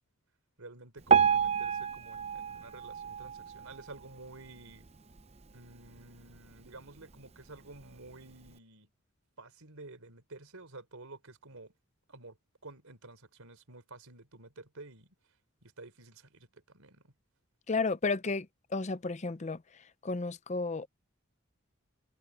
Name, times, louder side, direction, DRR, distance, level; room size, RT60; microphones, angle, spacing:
voice 1, 0.6-4.9 5.5-8.9 9.4-11.7 12.1-15.1 15.6-17.1, right 2 dB, 80° right, 3.7 m, -51 dB
Piano, 1.1-4.2 4.7-4.9 5.2-5.3 6.0-6.1 6.7-6.8, right 7 dB, 30° right, 0.7 m, -29 dB
voice 2, 17.7-18.5 18.7-19.6 20.0-20.9, left 3 dB, 30° left, 0.5 m, -32 dB
head